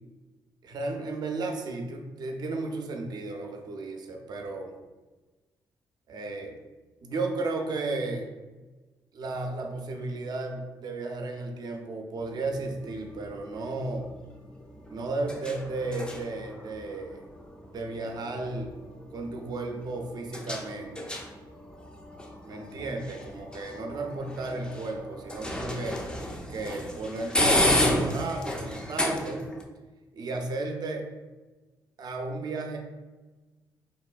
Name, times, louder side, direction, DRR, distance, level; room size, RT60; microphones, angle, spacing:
voice 1, 0.6-4.7 6.1-6.6 7.0-8.3 9.1-14.1 14.9-17.2 17.7-18.7 19.1-21.2 22.4-26.0 26.5-29.5 30.1-31.1 32.0-32.8, right 2 dB, 55° right, 3 dB, 0.5 m, -34 dB
sound 1, 12.2-29.6, left 1 dB, 10° left, 0.4 m, -33 dB
3.5 x 2.1 x 2.4 m, 1.2 s
cardioid pair, 80°, 8 cm